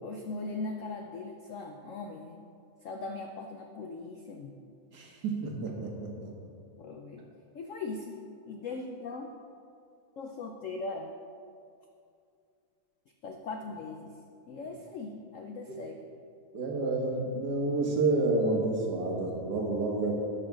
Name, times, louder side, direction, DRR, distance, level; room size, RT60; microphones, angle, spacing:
voice 1, 0.0-2.4 2.8-4.6 6.8-7.2 7.5-8.2 8.5-9.3 10.2-11.1 13.2-14.1 14.5-16.0, left 3 dB, 80° left, 3 dB, 0.7 m, -39 dB
voice 2, 4.9-6.3 16.5-20.1, right 2 dB, 60° right, 0 dB, 1.8 m, -29 dB
12.0 x 4.7 x 6.1 m, 2.4 s
omnidirectional pair, 2.1 m